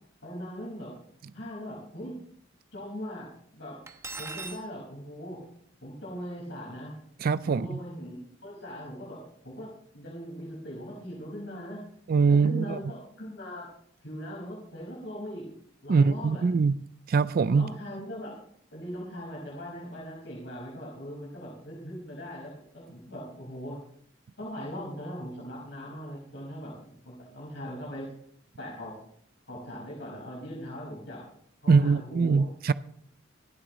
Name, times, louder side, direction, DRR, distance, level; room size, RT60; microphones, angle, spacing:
voice 1, 0.2-0.9 1.3-2.2 2.7-3.8 4.2-5.4 5.8-7.0 7.4-11.8 12.3-13.7 14.0-15.5 15.8-16.6 17.5-18.3 18.7-23.8 24.4-28.1 28.6-29.0 29.5-31.3 31.6-32.4, equal, 70° left, 5.2 m, -40 dB
Cutlery silverware, 3.9-4.6, right 3 dB, 15° right, 1.0 m, -39 dB
voice 2, 7.2-7.8 12.1-12.8 15.9-16.7 17.1-17.7 31.7-32.7, right 5 dB, 50° right, 0.4 m, -23 dB
25.5 x 8.7 x 3.1 m
head